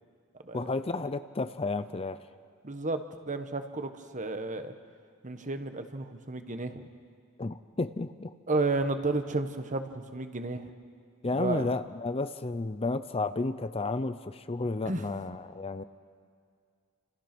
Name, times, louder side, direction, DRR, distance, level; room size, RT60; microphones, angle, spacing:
voice 1, 0.5-2.2 7.4-8.3 11.2-15.8, left 3 dB, 25° left, 12 dB, 0.6 m, -32 dB
voice 2, 2.6-4.7 5.2-6.9 8.5-10.6 11.3-11.7 14.8-15.0, right 3 dB, 35° right, 8 dB, 1.4 m, -32 dB
30.0 x 27.0 x 6.1 m, 2.2 s
head